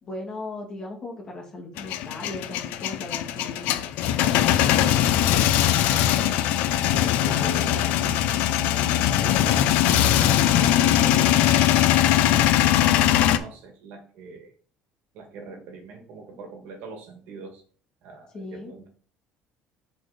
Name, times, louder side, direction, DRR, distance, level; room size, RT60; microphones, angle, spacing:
voice 1, 0.0-3.9 18.3-18.7, left 2 dB, 30° left, -2 dB, 2.1 m, -37 dB
Male speech man speaking / Vehicle / Engine starting, 1.8-13.4, left 11 dB, 70° left, 0.6 m, -21 dB
voice 2, 5.5-6.5 6.8-11.5 12.9-14.5 15.1-17.6 18.0-18.9, right 4 dB, 65° right, 3 dB, 1.9 m, -42 dB
6.5 x 4.2 x 5.1 m, 0.43 s
cardioid pair, 170°, 3 cm